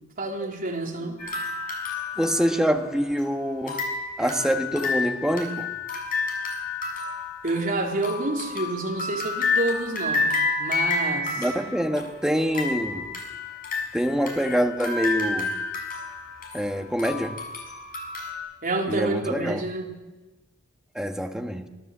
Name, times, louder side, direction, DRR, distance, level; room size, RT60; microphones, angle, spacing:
voice 1, 0.2-1.2 7.4-10.3 10.6-11.5 18.6-19.9, right 2 dB, 45° right, 3.8 m, -28 dB
sound 1, 1.2-3.2 3.7-18.3, left 3 dB, 45° left, 6.8 m, -30 dB
voice 2, 2.2-3.9 4.2-5.7 11.4-13.1 13.9-15.6 16.5-17.4 18.9-19.6 20.9-21.7, equal, 5° right, 1.4 m, -25 dB
25.5 x 17.5 x 7.5 m
head